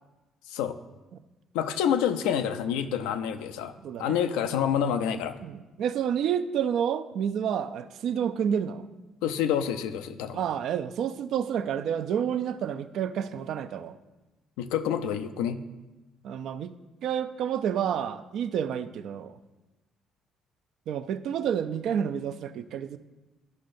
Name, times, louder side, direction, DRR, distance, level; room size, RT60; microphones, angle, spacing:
voice 1, 1.5-3.7 4.0-5.3 9.2-10.4 14.6-15.6, left 9 dB, 85° left, 9 dB, 0.4 m, -27 dB
voice 2, 3.8-4.2 5.4-8.9 10.3-14.0 16.2-16.8 17.0-19.3 20.9-23.0, right 8 dB, 70° right, 12 dB, 0.3 m, -29 dB
11.5 x 5.5 x 2.6 m, 1.1 s
supercardioid pair, 70°, 0 cm